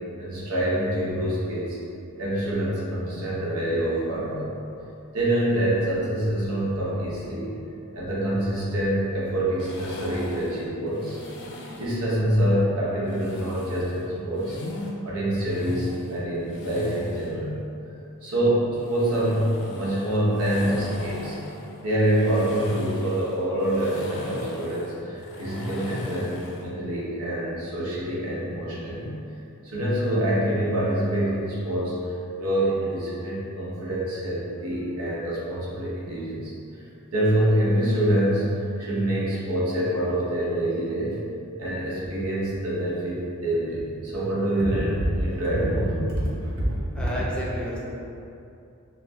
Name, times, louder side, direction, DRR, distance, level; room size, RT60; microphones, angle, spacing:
voice 1, 0.2-1.8 2.2-4.5 5.1-7.6 7.9-11.2 11.8-14.6 15.0-17.5 18.2-21.4 21.8-29.1 29.6-36.8 37.1-41.2 41.6-46.7, right 1 dB, 80° right, -7 dB, 1.1 m, -26 dB
sound 1, 9.6-12.0 13.1-14.9 15.4-17.4 18.8-26.7, left 2 dB, 60° left, 0.5 m, -38 dB
voice 2, 46.9-47.8, equal, 5° left, -6 dB, 0.5 m, -31 dB
5.7 x 2.2 x 2.9 m, 2.7 s
head